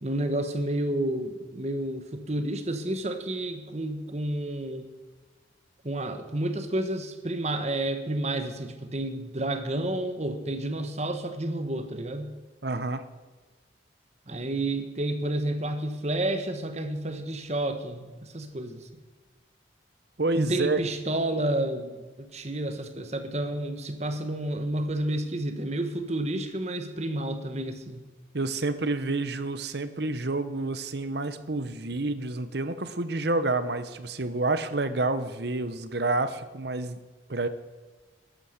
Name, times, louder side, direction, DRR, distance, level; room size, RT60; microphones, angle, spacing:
voice 1, 0.0-4.9 5.8-12.3 14.3-18.9 20.3-28.0, right 1 dB, 35° right, 8 dB, 1.3 m, -30 dB
voice 2, 12.6-13.0 20.2-20.8 28.3-37.0 37.3-37.5, right 2 dB, 55° right, 12 dB, 0.9 m, -29 dB
13.0 x 11.5 x 6.6 m, 1.3 s
head